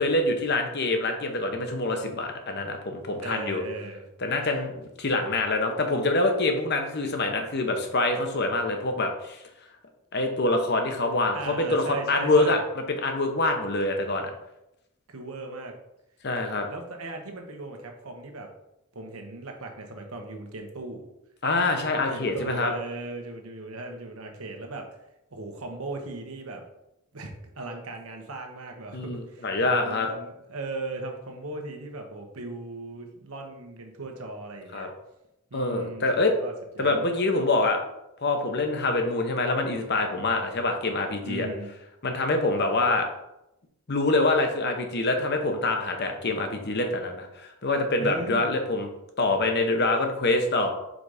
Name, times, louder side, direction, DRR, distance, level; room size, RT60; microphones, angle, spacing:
voice 1, 0.0-3.6 4.2-9.4 10.1-12.6 12.9-14.3 16.2-16.7 21.4-22.7 28.9-30.1 34.7-34.9 35.5-36.3 36.8-37.8 38.2-41.5 42.0-43.1 43.9-48.9 49.2-50.7, left 2 dB, 50° left, 4 dB, 0.9 m, -25 dB
voice 2, 3.2-4.1 11.3-12.6 15.1-15.7 16.6-18.5 18.9-21.1 22.1-24.9 25.3-26.6 27.1-34.9 35.5-36.1 36.3-36.9 41.2-41.7 48.0-48.5, right 2 dB, 75° right, 3 dB, 1.1 m, -38 dB
5.1 x 3.9 x 4.9 m, 0.88 s
head